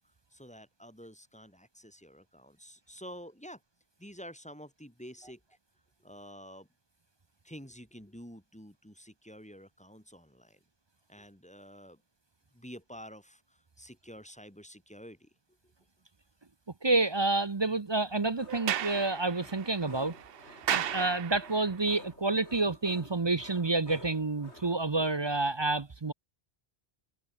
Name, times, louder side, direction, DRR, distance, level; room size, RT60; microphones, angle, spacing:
voice 1, 0.3-3.6 4.0-5.4 6.0-6.7 7.4-10.6 11.1-12.0 12.5-15.3 15.6-15.7, equal, 5° left, 3.9 m, -49 dB
voice 2, 16.8-20.1 20.7-26.1, right 3 dB, 30° right, 0.7 m, -29 dB
sound 1, 18.4-24.8, left 2 dB, 85° left, 5.7 m, -52 dB
Sliding door, 18.5-21.7, right 11 dB, 65° right, 0.8 m, -35 dB
omnidirectional pair, 1.1 m